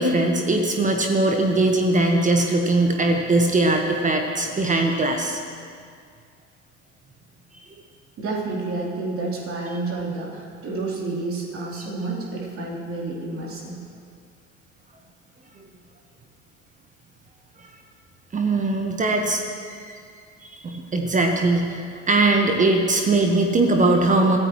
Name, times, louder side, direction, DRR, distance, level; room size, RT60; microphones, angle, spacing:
voice 1, 0.0-5.4 18.3-19.4 19.7-20.0 20.6-24.4, right 2 dB, 20° right, 3 dB, 1.5 m, -20 dB
voice 2, 8.2-13.8, right 3 dB, 35° right, -3 dB, 4.1 m, -30 dB
24.5 x 15.5 x 3.3 m, 2.2 s
figure-of-eight pair, 70°, 37 cm